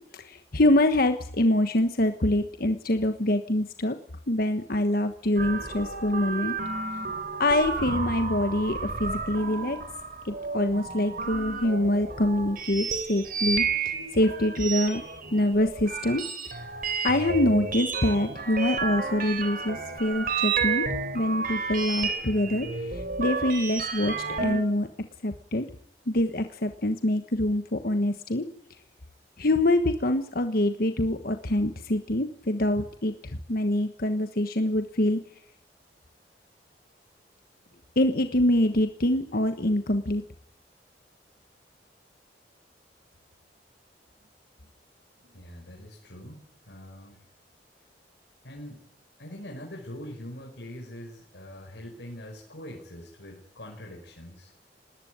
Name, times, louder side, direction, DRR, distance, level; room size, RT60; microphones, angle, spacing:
voice 1, 0.2-4.0 4.3-6.5 7.4-9.8 10.2-15.0 15.3-16.2 17.0-20.8 21.1-24.9 25.2-25.7 26.1-28.4 29.4-35.2 38.0-40.2, left 1 dB, 60° left, 7 dB, 1.3 m, -25 dB
sound 1, 5.4-24.6, right 4 dB, 55° right, 3.7 m, -31 dB
voice 2, 45.2-47.2 48.4-48.8 49.2-54.5, left 1 dB, 80° left, -1 dB, 5.4 m, -43 dB
19.5 x 19.0 x 9.4 m, 0.70 s
head